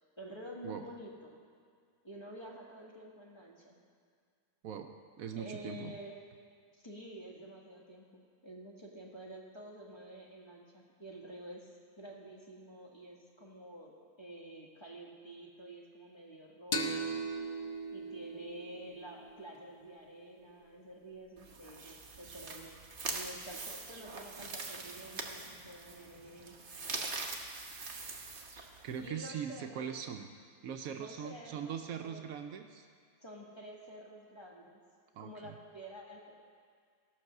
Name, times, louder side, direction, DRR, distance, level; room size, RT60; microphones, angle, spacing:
voice 1, 0.2-1.4 2.0-3.8 5.3-6.2 6.7-17.2 17.9-26.6 29.0-30.0 30.9-32.3 33.2-34.8 35.2-36.3, right 1 dB, 20° left, -3 dB, 1.4 m, -49 dB
voice 2, 4.6-6.0 28.8-30.3 30.6-32.9 35.1-35.5, right 8 dB, 70° right, 6 dB, 1.0 m, -41 dB
sound 1, 16.7-20.1, right 2 dB, 45° left, 0.7 m, -39 dB
sound 2, 21.4-29.1, right 3 dB, 40° right, 1.0 m, -43 dB
16.5 x 5.9 x 6.5 m, 2.2 s
omnidirectional pair, 1.6 m